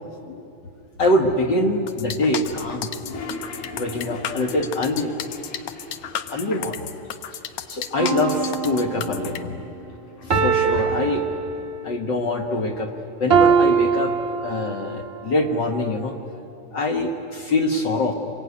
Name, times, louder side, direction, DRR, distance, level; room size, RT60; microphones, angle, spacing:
voice 1, 1.0-3.0 3.3-3.4 3.7-5.1 6.3-6.9 7.7-9.8 10.2-11.4 11.8-12.9 13.2-16.2 16.7-18.1, left 2 dB, 50° left, 3 dB, 1.4 m, -24 dB
sound 1, 1.9-9.4, left 9 dB, 70° left, 1.5 m, -33 dB
Toilet flush, 2.4-6.8 7.0-7.1 7.3-8.2 8.7-11.5, left 2 dB, 85° left, 4.3 m, -39 dB
sound 2, 8.0-9.3 10.3-12.0 13.3-15.0 15.7-15.8, right 6 dB, 50° right, 0.7 m, -22 dB
25.5 x 22.5 x 9.6 m, 2.8 s
omnidirectional pair, 3.6 m